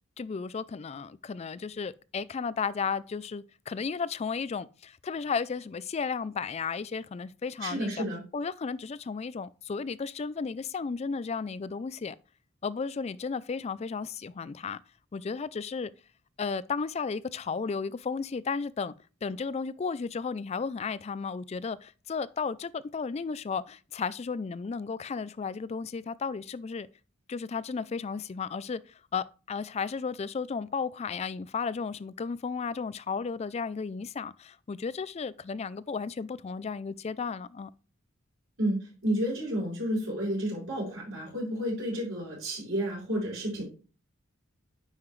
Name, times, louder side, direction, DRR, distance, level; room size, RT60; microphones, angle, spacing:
voice 1, 0.2-8.0 8.3-12.2 12.6-14.8 15.1-15.9 16.4-18.9 19.2-26.9 27.3-37.7, left 5 dB, 30° left, 0.3 m, -34 dB
voice 2, 7.6-8.2 38.6-43.6, equal, 65° right, 4.6 m, -31 dB
9.5 x 5.7 x 3.1 m
head